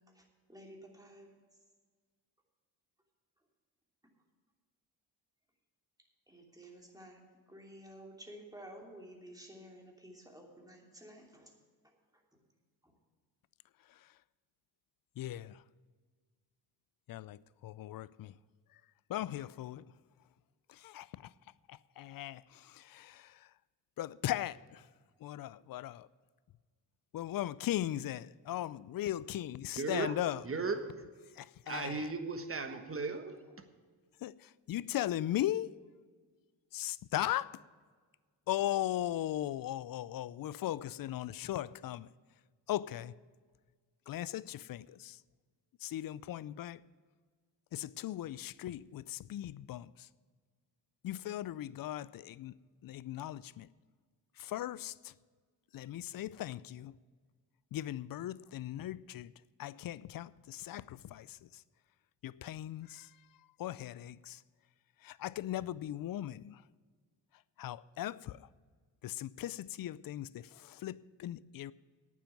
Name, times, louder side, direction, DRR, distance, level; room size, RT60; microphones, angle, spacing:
voice 1, 0.5-1.3 6.3-7.2 7.5-11.5 12.3-12.4, right 1 dB, 10° right, 2.9 m, -52 dB
voice 2, 13.8-14.2 15.2-15.6 17.1-18.3 18.7-18.8 19.1-19.9 20.7-21.3 21.7-23.5 24.0-24.9 25.2-26.1 27.1-30.4 31.3-32.1 34.2-35.8 36.7-37.6 38.5-42.1 42.7-43.1 44.1-45.2 45.8-46.8 47.7-50.1 51.0-52.5 52.8-53.7 54.4-55.1 55.7-57.0 57.7-59.3 59.6-61.6 62.2-64.4 65.0-66.6 67.6-68.5 69.0-71.7, left 13 dB, 55° left, 0.5 m, -38 dB
voice 3, 29.8-30.2 30.4-31.0 31.7-33.4, right 4 dB, 30° right, 1.4 m, -36 dB
9.2 x 7.5 x 9.2 m
supercardioid pair, 65°, 43 cm